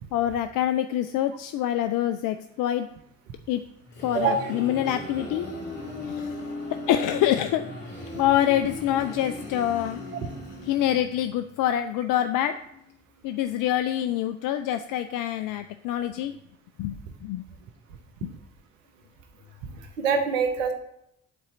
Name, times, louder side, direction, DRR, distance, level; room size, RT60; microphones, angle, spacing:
voice 1, 0.1-2.9 3.5-3.6 4.0-5.5 6.0-6.4 6.7-7.7 8.1-10.0 10.7-12.6 13.2-16.3 16.8-17.0 17.2-17.4 18.2-18.3, left 11 dB, 60° left, 10 dB, 0.5 m, -26 dB
sound 1, 3.6-11.3, left 2 dB, 80° left, 2.2 m, -37 dB
voice 2, 4.1-4.5 17.1-17.2 18.2-18.3 19.6-20.7, right 5 dB, 80° right, 6 dB, 0.8 m, -26 dB
7.5 x 4.2 x 6.9 m, 0.78 s
figure-of-eight pair, 45°, 38 cm